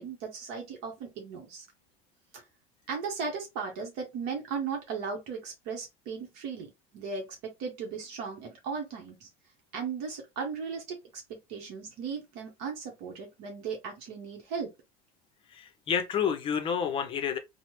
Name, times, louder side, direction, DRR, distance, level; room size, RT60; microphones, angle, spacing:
voice 1, 0.0-1.7 2.3-2.4 2.9-9.3 9.7-11.0 11.3-14.7, right 5 dB, 60° right, 0.9 m, -37 dB
voice 2, 15.5-17.4, left 7 dB, 30° left, 0.6 m, -29 dB
3.1 x 2.0 x 3.0 m
cardioid pair, 150°, 18 cm